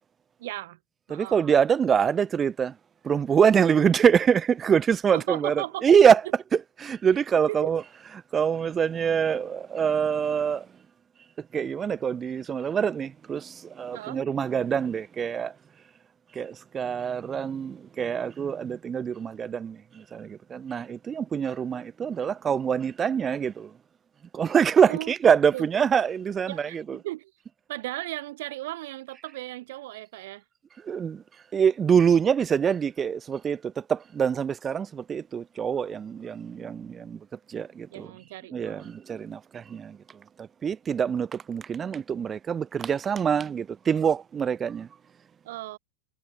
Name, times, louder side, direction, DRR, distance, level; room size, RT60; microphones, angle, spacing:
voice 1, 0.4-0.8 1.1-1.4 5.1-5.9 7.5-7.7 13.9-14.2 24.9-25.1 25.5-25.6 26.5-27.3 27.7-30.4 37.9-39.0 45.4-45.8, right 17 dB, 55° right, 5.9 m, -36 dB
voice 2, 1.1-2.8 3.0-6.2 6.8-7.8 8.3-10.7 11.4-15.5 16.3-23.7 24.3-27.0 30.8-31.2 31.5-38.1 38.5-40.0 40.4-44.9, right 7 dB, 20° right, 2.2 m, -25 dB
figure-of-eight pair, 90°, 0 cm